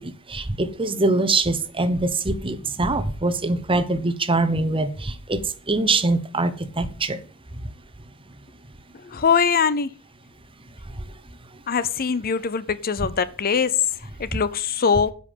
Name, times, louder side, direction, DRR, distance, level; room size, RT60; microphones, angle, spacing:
voice 1, 0.0-5.4 5.7-7.2, right 2 dB, 25° right, 1.0 m, -23 dB
voice 2, 9.1-9.9 11.7-13.7 14.2-15.1, left 6 dB, 45° left, 0.6 m, -22 dB
10.5 x 5.4 x 8.3 m
head